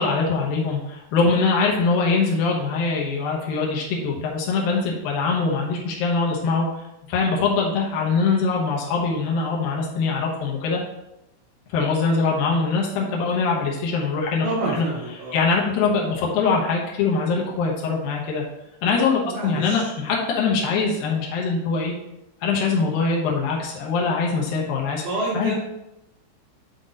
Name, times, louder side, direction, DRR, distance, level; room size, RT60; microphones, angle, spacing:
voice 1, 0.0-6.7 7.1-10.8 11.7-14.5 14.8-14.9 15.3-18.4 18.8-21.9 22.4-25.1 25.3-25.6, left 4 dB, 85° left, -2 dB, 2.0 m, -23 dB
voice 2, 14.4-15.4 19.2-19.8 25.0-25.6, right 2 dB, 65° right, -6 dB, 2.6 m, -28 dB
9.6 x 4.0 x 3.8 m, 0.88 s
omnidirectional pair, 5.7 m